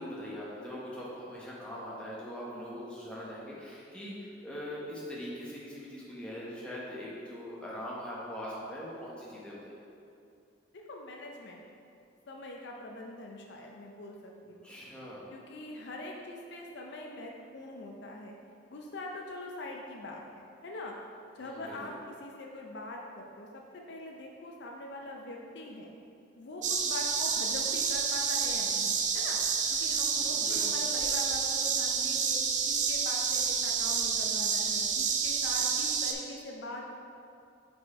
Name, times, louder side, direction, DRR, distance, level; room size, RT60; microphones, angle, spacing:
voice 1, 0.0-9.8 14.6-15.3 21.4-21.8 30.2-30.6, equal, 5° left, -7 dB, 1.0 m, -42 dB
voice 2, 10.7-11.6 12.3-14.7 15.3-18.4 18.7-21.0 21.3-21.9 22.2-25.9 26.4-29.4 29.7-32.4 32.6-36.9, left 1 dB, 60° left, 0 dB, 0.5 m, -43 dB
sound 1, 26.6-36.1, right 6 dB, 40° right, 0.4 m, -29 dB
5.5 x 4.3 x 4.1 m, 2.5 s
head